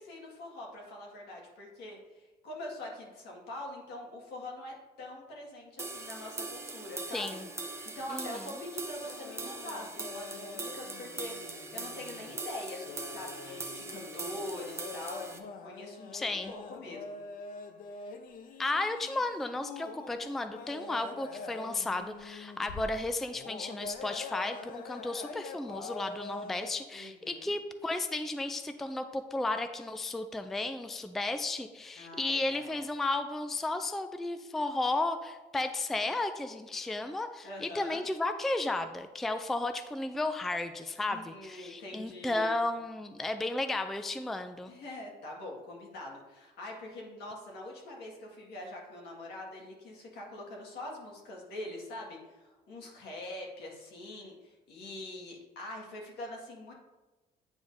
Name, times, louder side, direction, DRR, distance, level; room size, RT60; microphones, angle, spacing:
voice 1, 0.0-7.4 8.0-17.2 26.9-27.5 32.0-32.8 37.4-38.0 41.1-42.6 44.7-56.7, left 1 dB, 75° left, -1 dB, 1.8 m, -44 dB
sound 1, 5.8-15.4, right 3 dB, 15° right, 0.7 m, -41 dB
voice 2, 7.1-7.5 8.1-8.4 16.1-16.5 18.6-44.7, left 2 dB, ahead, 8 dB, 0.3 m, -34 dB
sound 2, 9.0-26.7, left 4 dB, 60° left, 0.6 m, -45 dB
9.2 x 4.8 x 2.6 m, 1.2 s
cardioid pair, 110°, 17 cm